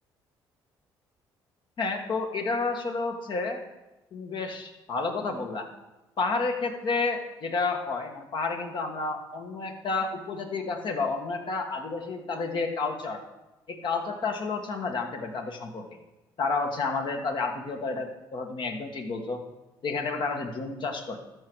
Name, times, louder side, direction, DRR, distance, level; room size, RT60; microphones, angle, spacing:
voice 1, 1.8-3.6 4.1-5.7 6.2-13.2 13.7-15.8 16.4-19.4 19.8-21.2, left 4 dB, 55° left, 4 dB, 1.6 m, -30 dB
13.0 x 4.8 x 6.2 m, 1.0 s
supercardioid pair, 70°, 9 cm